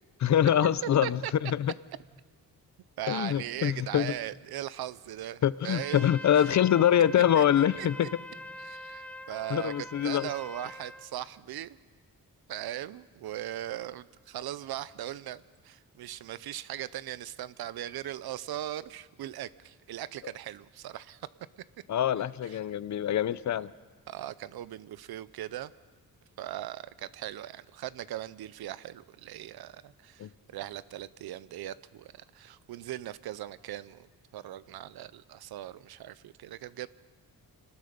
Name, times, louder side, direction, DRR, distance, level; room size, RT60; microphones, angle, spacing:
voice 1, 0.2-1.7 3.1-4.1 5.4-8.1 9.5-10.3 21.9-23.7 30.2-30.3, left 10 dB, 50° left, 18 dB, 0.5 m, -25 dB
voice 2, 3.0-6.5 7.3-8.1 8.6-11.8 12.5-21.3 21.6-21.7 22.4-22.6 24.1-25.7 26.4-34.1 34.3-36.9, right 13 dB, 80° right, 17 dB, 0.6 m, -39 dB
Trumpet, 5.7-11.1, left 1 dB, 5° left, 0.7 m, -44 dB
26.5 x 19.5 x 5.1 m, 1.4 s
wide cardioid pair, 145°, 37 cm